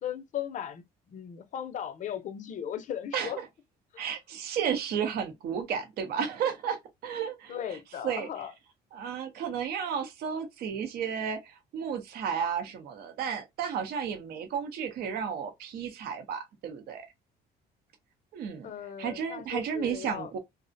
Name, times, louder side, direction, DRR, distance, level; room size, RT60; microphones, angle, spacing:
voice 1, 0.0-3.4 3.9-4.1 7.5-8.5 18.6-20.3, left 9 dB, 50° left, 0.5 m, -37 dB
voice 2, 4.0-7.8 8.0-8.3 8.9-17.1 18.3-18.7 19.0-20.4, right 7 dB, 65° right, 0.6 m, -33 dB
2.4 x 2.0 x 2.5 m
cardioid pair, 110°, 17 cm